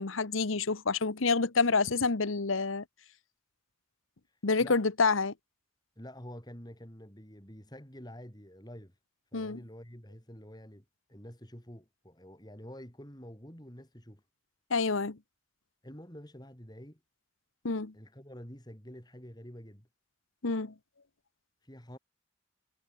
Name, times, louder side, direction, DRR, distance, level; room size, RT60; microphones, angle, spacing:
voice 1, 0.0-2.8 4.4-5.3 9.3-9.6 14.7-15.2 17.6-17.9 20.4-20.7, left 4 dB, 85° left, 1.2 m, -28 dB
voice 2, 4.3-4.8 6.0-8.9 9.3-14.2 15.8-17.0 17.9-19.9 21.6-22.0, equal, 20° left, 5.9 m, -48 dB
head